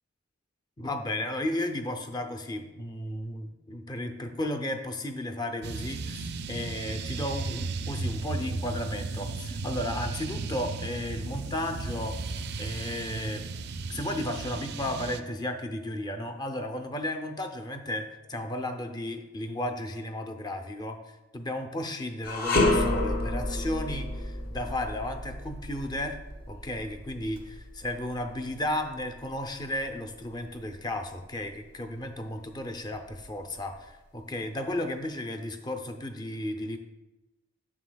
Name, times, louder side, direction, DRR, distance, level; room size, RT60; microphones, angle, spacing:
voice 1, 0.8-12.2 12.6-13.4 13.9-21.0 21.3-26.2 26.5-36.8, left 1 dB, 20° left, 7 dB, 0.6 m, -34 dB
sound 1, 5.6-15.2, right 3 dB, 55° right, 0.4 m, -35 dB
sound 2, 22.2-31.5 31.9-32.1 32.9-33.8, left 2 dB, 45° left, 1.1 m, -31 dB
9.6 x 7.0 x 2.3 m, 1.0 s
head